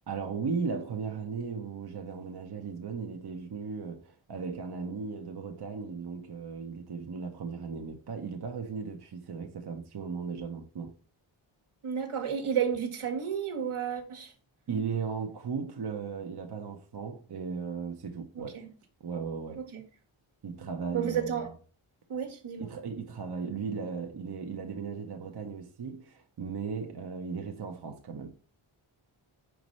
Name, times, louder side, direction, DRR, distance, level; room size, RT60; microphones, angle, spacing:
voice 1, 0.1-10.9 14.7-18.6 19.0-19.6 20.4-21.5 22.6-28.3, right 5 dB, 50° right, 0.9 m, -36 dB
voice 2, 11.8-14.3 18.3-18.7 19.6-19.8 20.9-21.5 22.1-22.7, right 8 dB, 75° right, 1.5 m, -32 dB
5.1 x 4.7 x 5.3 m
cardioid pair, 70°, 50 cm